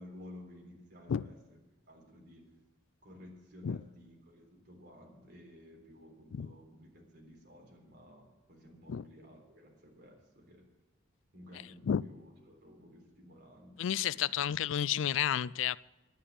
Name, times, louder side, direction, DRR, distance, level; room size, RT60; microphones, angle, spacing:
voice 1, 0.0-1.4 1.9-2.5 3.0-10.6 11.3-14.3, left 1 dB, 55° right, 0 dB, 3.7 m, -54 dB
voice 2, 13.8-15.8, left 9 dB, 75° left, 20 dB, 0.4 m, -31 dB
11.0 x 8.9 x 8.6 m, 1.1 s
head